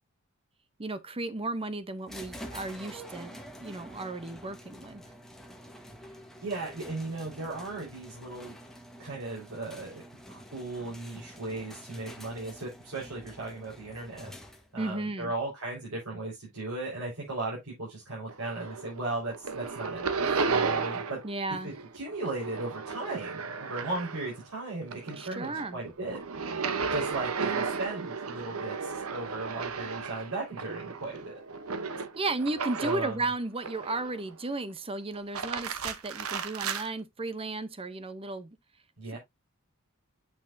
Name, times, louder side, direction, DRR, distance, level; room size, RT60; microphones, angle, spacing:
voice 1, 0.8-5.0 14.8-15.3 21.2-21.7 25.2-25.8 32.1-38.5, right 2 dB, 25° right, 0.7 m, -34 dB
sound 1, 2.1-14.9, equal, ahead, 1.3 m, -47 dB
voice 2, 6.4-8.5 9.0-10.0 10.3-14.3 14.7-21.2 21.6-26.2 26.9-31.4 32.8-33.2 39.0-39.2, right 2 dB, 90° right, 4.4 m, -36 dB
sound 2, 18.3-19.0 19.3-21.3 21.6-24.4 24.8-33.1 33.6-34.3 35.1-36.9, right 5 dB, 75° right, 0.9 m, -34 dB
8.6 x 6.0 x 2.6 m
head